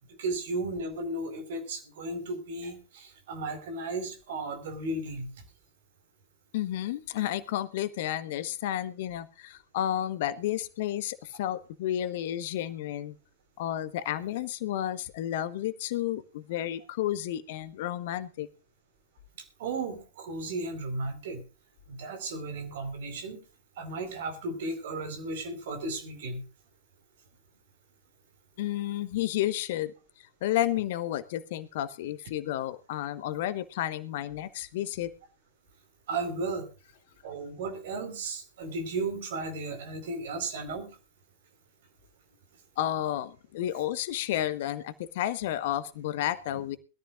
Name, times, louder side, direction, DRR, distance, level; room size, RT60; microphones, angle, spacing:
voice 1, 0.2-5.3 19.6-21.4 21.9-23.4 23.8-26.4 36.1-36.7 37.2-40.9, right 2 dB, 55° right, 7 dB, 4.5 m, -34 dB
voice 2, 6.5-13.1 13.6-18.5 28.6-35.1 42.8-46.8, left 12 dB, 55° left, 14 dB, 1.2 m, -31 dB
21.5 x 13.5 x 2.5 m, 0.34 s
figure-of-eight pair, 90°, 0 cm